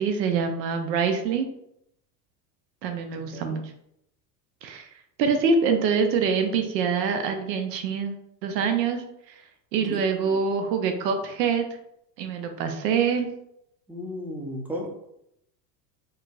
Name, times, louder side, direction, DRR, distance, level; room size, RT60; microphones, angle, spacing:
voice 1, 0.0-1.5 2.8-3.6 4.6-4.9 5.2-8.2 8.4-9.4 9.7-11.6 12.2-13.3, right 5 dB, 85° right, 6 dB, 0.6 m, -25 dB
voice 2, 3.2-3.6 9.8-10.4 13.9-14.9, left 1 dB, 5° right, 0 dB, 0.4 m, -35 dB
4.5 x 2.0 x 2.3 m, 0.77 s
hypercardioid pair, 90°, 49 cm